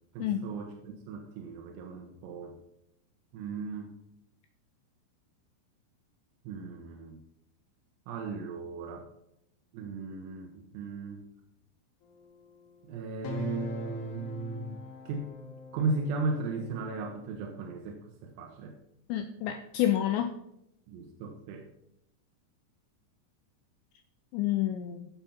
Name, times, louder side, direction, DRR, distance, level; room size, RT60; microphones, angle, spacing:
voice 1, 0.1-2.6 3.3-3.9 6.5-7.2 8.1-9.1 9.7-11.3 12.8-14.8 15.1-15.3 15.7-18.8 20.9-21.7, right 4 dB, 85° right, 2 dB, 4.0 m, -36 dB
sound 1, 12.0-17.4, left 5 dB, 70° left, 3.7 m, -44 dB
voice 2, 19.1-20.3 24.3-25.1, left 12 dB, 90° left, 6 dB, 2.5 m, -29 dB
15.0 x 7.2 x 4.4 m, 0.80 s
omnidirectional pair, 5.9 m